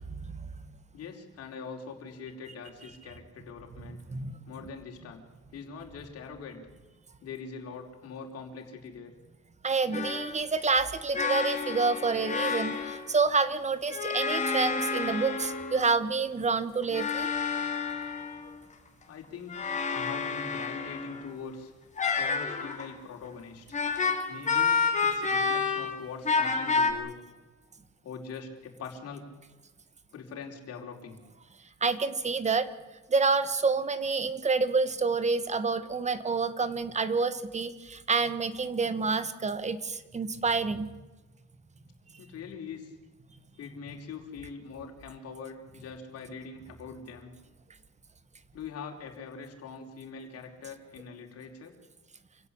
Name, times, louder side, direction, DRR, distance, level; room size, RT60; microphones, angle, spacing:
voice 1, 0.9-4.0 4.5-5.2 5.5-6.6 7.2-9.1 19.0-21.7 22.1-23.8 24.3-27.2 28.0-29.2 30.1-31.2 42.2-42.9 43.6-47.3 48.5-51.7, left 5 dB, 55° left, 2 dB, 5.0 m, -43 dB
voice 2, 9.6-17.3 31.8-32.7 33.1-40.9, right 4 dB, 25° right, 14 dB, 1.6 m, -28 dB
sound 1, 9.9-10.4 11.1-13.1 13.9-15.9 16.8-18.5 19.5-21.3 22.0-22.9 23.7-26.0 26.3-26.9, left 5 dB, 25° left, 3.5 m, -29 dB
27.5 x 16.5 x 8.7 m, 1.2 s
cardioid pair, 140°, 29 cm